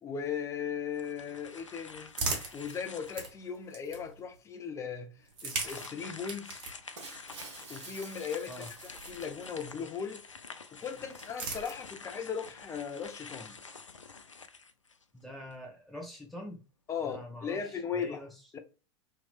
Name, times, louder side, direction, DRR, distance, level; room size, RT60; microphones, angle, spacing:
voice 1, 0.0-2.1 2.5-5.1 5.4-6.6 7.7-8.5 8.8-10.2 10.7-13.6 16.9-18.2 18.5-18.6, left 7 dB, 20° left, 0.6 m, -37 dB
sound 1, 0.9-3.5 4.1-4.2 5.4-15.2, left 4 dB, 85° left, 0.4 m, -48 dB
sound 2, 1.3-4.4 5.2-9.8 10.7-12.2, right 3 dB, 50° right, 1.1 m, -41 dB
Shatter, 7.0-9.4, right 4 dB, 70° right, 0.9 m, -49 dB
voice 2, 15.1-16.6 17.1-18.4, left 1 dB, ahead, 1.0 m, -44 dB
2.9 x 2.9 x 2.3 m
figure-of-eight pair, 90°, 15 cm